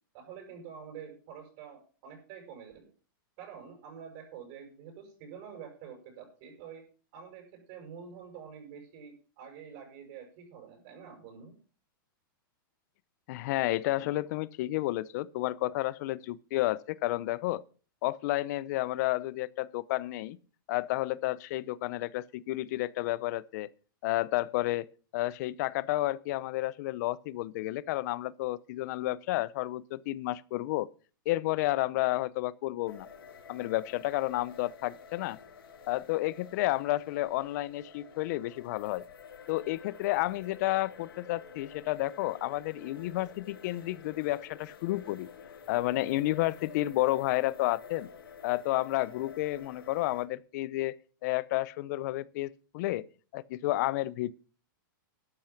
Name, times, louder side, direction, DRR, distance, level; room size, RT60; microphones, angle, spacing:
voice 1, 0.1-2.9 3.4-6.8 7.1-11.5, right 7 dB, 45° right, 6.3 m, -47 dB
voice 2, 13.3-17.6 18.0-20.4 20.7-23.7 24.0-24.9 25.1-30.9 31.3-33.1 33.5-35.4 35.9-39.0 39.5-45.3 45.7-48.1 48.4-51.0 51.2-53.0 53.3-54.3, left 17 dB, 50° left, 0.7 m, -31 dB
sound 1, 32.9-50.3, left 6 dB, 85° left, 2.3 m, -50 dB
13.0 x 8.8 x 5.9 m
hypercardioid pair, 140°, 12 cm